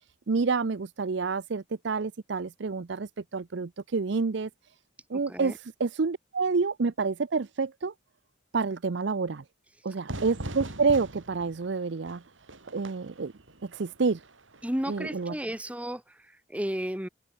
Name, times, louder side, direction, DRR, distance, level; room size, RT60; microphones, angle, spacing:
voice 1, 0.3-4.5 5.1-7.9 8.5-9.4 9.8-12.2 12.7-13.3 13.6-14.2 14.9-15.4, right 4 dB, 65° right, 0.6 m, -28 dB
Fire / Fireworks, 10.1-15.6, right 1 dB, 85° right, 4.2 m, -42 dB
voice 2, 14.6-16.0 16.5-17.1, equal, 5° right, 1.8 m, -32 dB
head